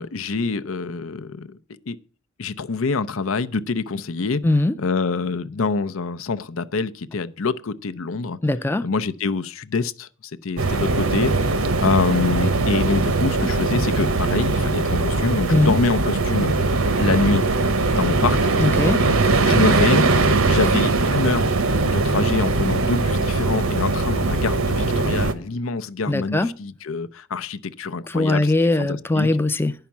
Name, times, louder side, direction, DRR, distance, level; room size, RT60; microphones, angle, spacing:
voice 1, 0.0-1.6 1.9-2.0 2.4-4.4 4.8-8.4 8.8-10.1 10.4-16.6 17.0-17.5 17.9-18.5 19.4-20.1 20.5-21.5 21.8-28.5 28.8-29.3, left 4 dB, 75° left, 0.6 m, -25 dB
voice 2, 4.4-4.8 8.4-8.9 15.5-15.8 18.6-19.0 26.1-26.5 28.1-29.7, left 2 dB, 10° left, 0.4 m, -20 dB
sound 1, 10.6-25.3, right 3 dB, 80° right, 1.0 m, -20 dB
10.5 x 5.7 x 7.1 m
head